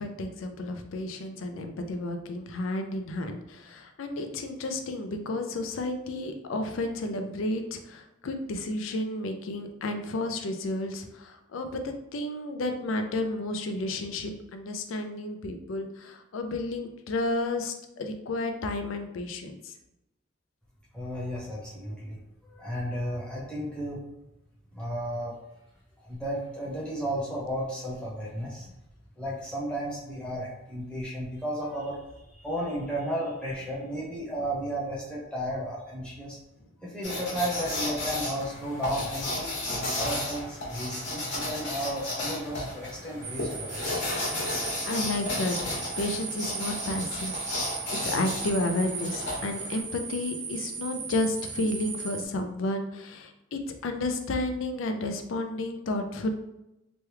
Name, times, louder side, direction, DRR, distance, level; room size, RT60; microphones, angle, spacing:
voice 1, 0.0-19.7 44.4-47.3 47.6-47.7 48.0-56.3, left 2 dB, 70° left, 6 dB, 0.4 m, -32 dB
voice 2, 20.9-22.2 22.4-24.0 24.7-25.3 26.0-28.7 29.2-32.0 32.3-36.4 36.8-39.5 39.9-44.1, equal, 5° left, -7 dB, 0.9 m, -33 dB
sound 1, 37.0-49.8, left 1 dB, 55° left, 1.2 m, -33 dB
sound 2, 43.2-52.3, right 5 dB, 35° right, 0.4 m, -37 dB
3.0 x 2.3 x 3.2 m, 0.91 s
head